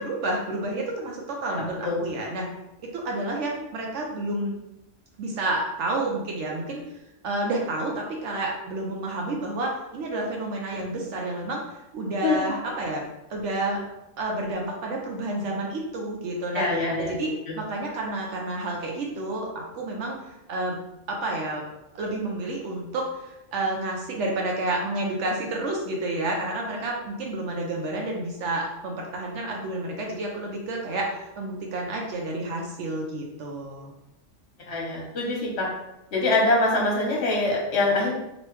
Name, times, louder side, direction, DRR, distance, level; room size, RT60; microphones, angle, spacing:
voice 1, 0.0-2.5 2.9-4.5 5.2-6.8 7.2-13.8 14.2-16.6 17.0-20.2 20.5-20.8 21.1-21.6 21.9-33.9, right 2 dB, 75° right, 0 dB, 0.9 m, -30 dB
voice 2, 16.5-17.1 34.7-35.7 36.1-38.1, left 2 dB, 60° left, -3 dB, 1.2 m, -24 dB
3.0 x 2.6 x 3.1 m, 0.91 s
omnidirectional pair, 1.3 m